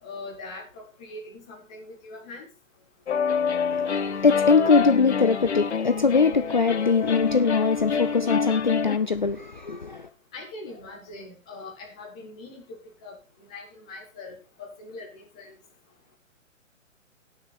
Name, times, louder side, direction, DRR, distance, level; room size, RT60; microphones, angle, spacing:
voice 1, 0.0-2.4 10.3-15.5, left 2 dB, 5° left, 0.8 m, -42 dB
sound 1, 3.1-9.0, left 6 dB, 60° left, 1.2 m, -27 dB
voice 2, 3.7-10.1, left 5 dB, 40° left, 0.5 m, -22 dB
16.5 x 6.3 x 4.1 m
hypercardioid pair, 175°, 39 cm